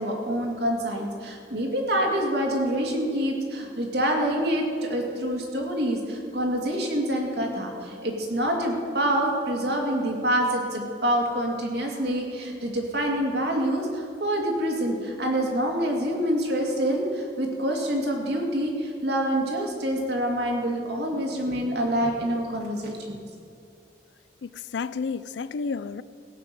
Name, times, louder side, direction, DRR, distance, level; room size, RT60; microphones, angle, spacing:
voice 1, 0.0-23.2, right 1 dB, 65° right, 0 dB, 2.3 m, -26 dB
voice 2, 24.4-26.0, left 5 dB, 80° left, 16 dB, 0.4 m, -31 dB
17.0 x 5.9 x 7.6 m, 2.5 s
head